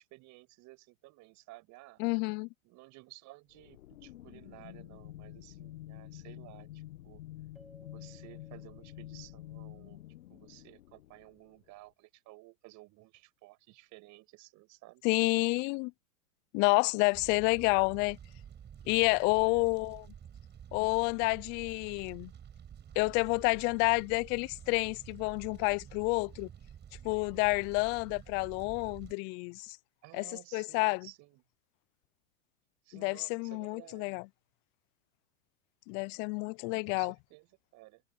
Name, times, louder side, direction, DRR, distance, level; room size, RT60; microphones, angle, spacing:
voice 1, 0.0-2.0 2.6-7.2 7.8-10.0 10.3-15.0 19.4-19.7 30.0-31.4 32.8-34.2 36.6-38.0, right 20 dB, 40° right, 6.0 m, -55 dB
voice 2, 2.0-2.5 15.0-15.9 16.5-18.2 18.9-20.0 20.7-22.3 23.0-26.5 27.0-29.8 30.1-30.3 30.5-31.1 32.9-34.2 35.9-37.1, left 32 dB, 25° left, 0.4 m, -29 dB
sound 1, 3.5-11.8, left 15 dB, 65° left, 1.6 m, -49 dB
Keyboard (musical), 7.6-10.0, right 1 dB, ahead, 3.6 m, -61 dB
Fire, 17.1-29.1, right 9 dB, 25° right, 5.1 m, -50 dB
hypercardioid pair, 105°, 43 cm